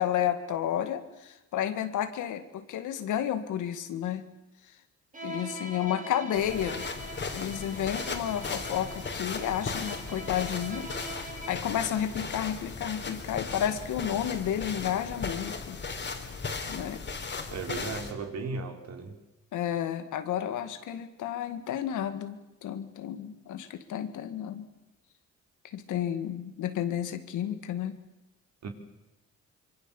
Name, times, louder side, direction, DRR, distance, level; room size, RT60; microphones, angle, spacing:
voice 1, 0.0-4.3 5.2-6.9 7.3-10.9 11.2-15.8 16.7-17.0 19.5-22.4 22.6-24.7 25.6-28.0, left 10 dB, 80° left, 9 dB, 2.2 m, -31 dB
Bowed string instrument, 5.1-11.8, right 1 dB, 25° right, 3.6 m, -42 dB
sound 1, 6.3-18.1, left 4 dB, 40° left, 3.8 m, -37 dB
voice 2, 17.5-19.2 28.6-28.7, right 4 dB, 60° right, 4 dB, 4.2 m, -36 dB
25.5 x 23.5 x 7.3 m, 0.98 s
cardioid pair, 90°, 30 cm